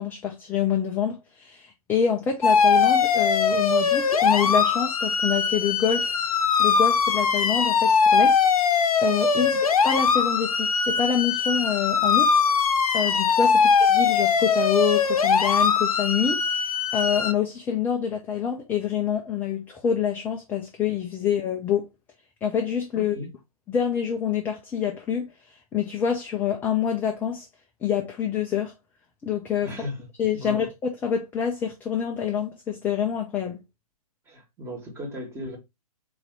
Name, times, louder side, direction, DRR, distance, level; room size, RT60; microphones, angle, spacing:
voice 1, 0.0-6.2 6.6-8.4 8.6-9.6 9.8-21.9 22.4-23.2 23.7-25.3 25.7-27.5 27.8-28.7 29.2-29.7 30.2-33.6, left 8 dB, 10° left, 0.4 m, -26 dB
sound 1, 2.4-17.3, left 5 dB, 65° left, 0.7 m, -21 dB
voice 2, 22.9-23.3 29.6-30.1 30.3-30.7 34.3-35.6, left 1 dB, 15° right, 1.4 m, -36 dB
3.9 x 2.6 x 4.4 m
figure-of-eight pair, 125°, 20 cm